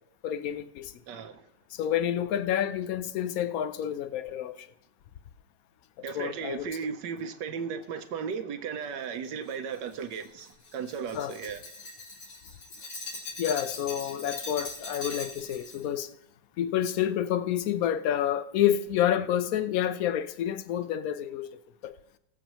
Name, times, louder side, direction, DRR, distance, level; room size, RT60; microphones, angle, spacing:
voice 1, 0.2-0.9 1.7-4.7 6.1-6.7 11.1-11.3 13.4-16.1 16.6-21.9, left 10 dB, 70° left, 0.9 m, -29 dB
voice 2, 1.1-1.4 6.0-11.6, right 6 dB, 70° right, 1.4 m, -35 dB
Glass, 9.5-15.8, left 3 dB, 90° left, 3.9 m, -41 dB
20.5 x 7.1 x 3.0 m
omnidirectional pair, 2.0 m